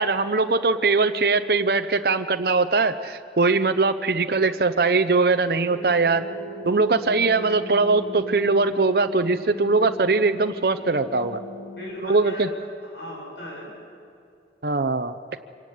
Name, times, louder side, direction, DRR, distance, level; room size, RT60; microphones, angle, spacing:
voice 1, 0.0-6.2 6.6-11.4 12.0-12.5 14.6-15.1, right 3 dB, 55° right, 8 dB, 0.7 m, -21 dB
sound 1, 5.7-11.9, left 1 dB, 40° left, 1.7 m, -39 dB
voice 2, 11.8-13.7, equal, 85° left, -2 dB, 7.6 m, -37 dB
25.0 x 17.5 x 9.4 m, 2.5 s
head